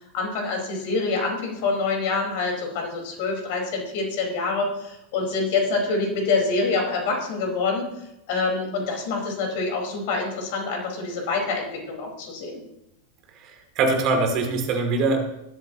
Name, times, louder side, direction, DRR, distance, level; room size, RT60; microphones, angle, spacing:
voice 1, 0.1-7.9 8.3-12.6, left 3 dB, 50° left, 1 dB, 4.7 m, -26 dB
voice 2, 13.4-15.2, right 3 dB, 40° right, 4 dB, 2.8 m, -23 dB
19.0 x 13.5 x 3.0 m, 0.85 s
figure-of-eight pair, 90°, 0 cm